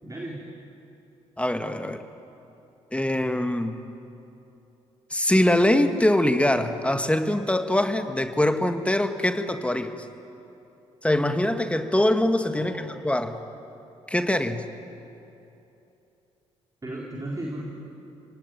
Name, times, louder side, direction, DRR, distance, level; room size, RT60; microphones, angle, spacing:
voice 1, 0.0-0.4 12.6-13.0 16.8-17.7, right 1 dB, 20° right, -2 dB, 4.2 m, -35 dB
voice 2, 1.4-2.0 2.9-3.8 5.1-9.9 11.0-13.4 14.1-14.6, left 1 dB, 10° left, 8 dB, 1.9 m, -23 dB
28.0 x 18.5 x 9.2 m, 2.9 s
figure-of-eight pair, 40°, 16 cm